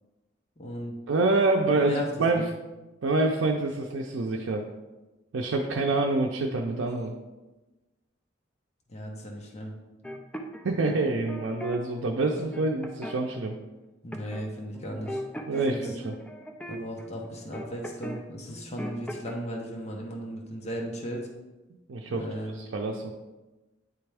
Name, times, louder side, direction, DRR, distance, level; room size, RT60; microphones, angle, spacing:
voice 1, 0.6-0.9 1.8-2.5 8.9-9.7 14.0-15.2 15.7-15.9 16.7-21.3 22.1-22.7, equal, 35° left, -1 dB, 0.8 m, -36 dB
voice 2, 1.1-2.4 3.0-4.6 5.3-7.1 10.6-13.5 15.5-16.1 21.9-22.2 22.5-23.1, right 2 dB, 80° right, 0 dB, 0.5 m, -26 dB
sound 1, 10.0-11.8 12.2-13.5 14.1-14.5 14.7-18.2 18.5-19.3, equal, 5° left, 0.4 m, -39 dB
9.2 x 3.4 x 3.4 m, 1.1 s
head